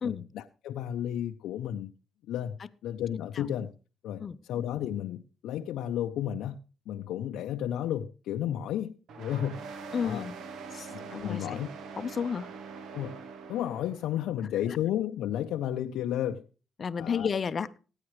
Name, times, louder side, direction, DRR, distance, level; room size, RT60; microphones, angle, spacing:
voice 1, 0.0-1.9 2.3-3.7 4.0-6.6 6.9-9.6 9.9-10.3 10.9-11.7 12.9-13.2 13.5-16.5 17.0-17.3, left 11 dB, 85° left, 0.5 m, -33 dB
voice 2, 3.1-3.4 4.2-4.4 9.9-10.4 10.7-11.6 12.0-12.5 16.8-17.8, left 6 dB, 45° left, 0.6 m, -32 dB
sound 1, 9.1-14.2, right 5 dB, 75° right, 1.1 m, -43 dB
16.0 x 9.7 x 3.1 m
cardioid pair, 90°, 0 cm